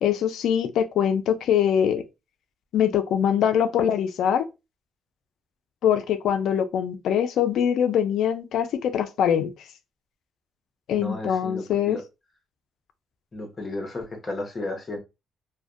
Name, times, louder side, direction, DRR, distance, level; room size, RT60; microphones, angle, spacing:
voice 1, 0.0-2.0 2.7-4.5 5.8-9.5 10.9-12.0, left 9 dB, 75° left, 0.3 m, -23 dB
voice 2, 10.9-12.0 13.3-15.0, left 2 dB, 30° left, 0.8 m, -33 dB
2.5 x 2.1 x 2.3 m
cardioid pair, 90°, 0 cm